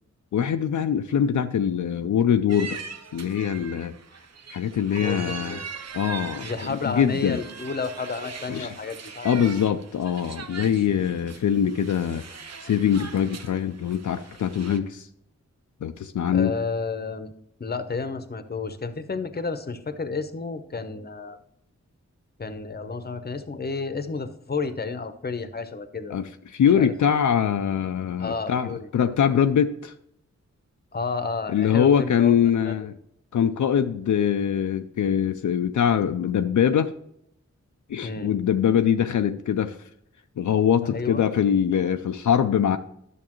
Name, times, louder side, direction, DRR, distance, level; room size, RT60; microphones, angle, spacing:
voice 1, 0.3-2.8 3.1-3.9 4.5-5.6 5.9-7.4 8.5-8.7 9.2-12.2 12.6-15.1 15.8-16.5 26.1-29.9 31.5-32.9 33.3-36.9 37.9-39.8 40.4-42.8, left 8 dB, 80° left, 8 dB, 0.5 m, -23 dB
sound 1, 2.5-14.8, right 5 dB, 60° right, 0.7 m, -41 dB
voice 2, 5.0-5.7 6.4-9.5 16.3-17.3 17.6-21.4 22.4-26.2 26.7-26.9 28.2-28.9 30.9-32.4 32.6-32.7 38.0-38.3 40.8-41.3, left 4 dB, 35° left, 10 dB, 0.8 m, -31 dB
11.0 x 6.6 x 3.0 m, 0.73 s
wide cardioid pair, 60°, 29 cm